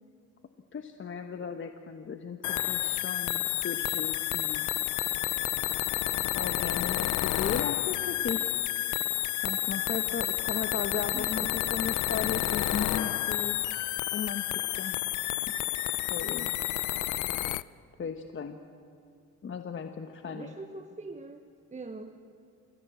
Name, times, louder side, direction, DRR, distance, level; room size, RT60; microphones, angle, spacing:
voice 1, 0.7-4.7 6.4-8.5 9.4-13.8 14.1-14.4 14.8-15.0 16.1-16.6 18.0-18.6 19.4-20.5, left 6 dB, 40° left, 6 dB, 1.1 m, -36 dB
sound 1, 2.4-17.6, left 15 dB, 75° left, 0.6 m, -30 dB
voice 2, 11.1-11.8 20.2-22.2, right 3 dB, 25° right, 7 dB, 1.1 m, -43 dB
26.5 x 16.0 x 8.1 m, 2.5 s
cardioid pair, 90°, 30 cm